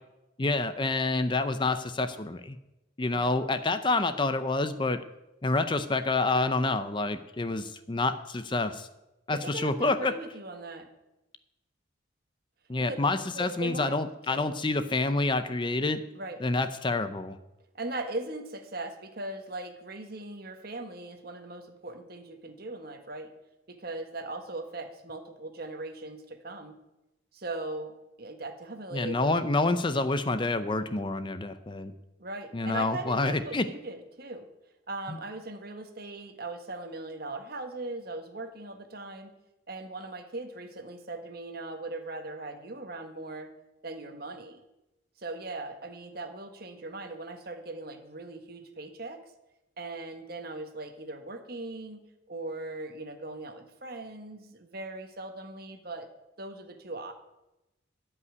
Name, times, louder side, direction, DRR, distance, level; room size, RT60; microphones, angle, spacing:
voice 1, 0.4-2.6 3.0-5.0 5.4-8.9 9.3-10.1 12.7-16.0 16.4-17.4 28.9-31.9 32.5-33.7 35.1-35.2, left 3 dB, 25° left, 11 dB, 0.6 m, -28 dB
voice 2, 9.3-10.9 12.8-13.0 13.3-13.9 14.3-14.4 16.1-16.4 17.7-23.3 23.7-26.8 27.3-29.3 32.2-34.5 34.9-39.3 39.7-43.5 43.8-44.6 45.2-49.3 49.8-56.1 56.4-57.1, right 2 dB, 55° right, 6 dB, 1.5 m, -39 dB
13.5 x 5.6 x 9.5 m, 0.95 s
head